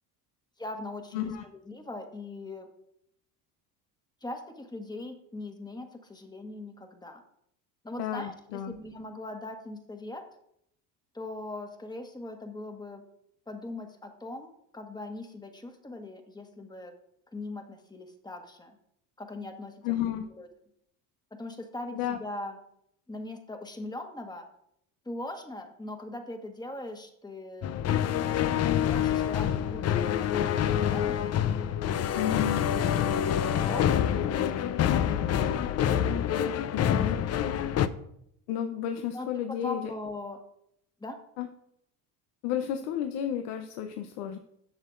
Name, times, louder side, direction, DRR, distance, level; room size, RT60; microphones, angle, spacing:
voice 1, 0.6-1.3 1.6-2.7 4.2-7.2 7.8-8.3 8.7-10.2 11.1-13.0 13.5-16.9 17.3-18.7 19.2-20.5 21.4-22.6 23.1-24.4 25.0-27.7 28.8-31.8 33.2-33.8 34.2-34.5 34.8-35.8 39.1-40.4 41.0-41.2, left 2 dB, 10° left, 5 dB, 1.3 m, -40 dB
voice 2, 1.1-1.4 8.0-8.8 19.8-20.2 21.9-22.2 32.1-32.7 36.7-37.2 38.5-39.9 41.4-41.5 42.4-44.4, left 10 dB, 75° left, 6 dB, 0.9 m, -32 dB
sound 1, 27.6-37.9, left 9 dB, 35° left, 0.5 m, -26 dB
11.0 x 6.5 x 2.5 m, 0.74 s
supercardioid pair, 85°, 45 cm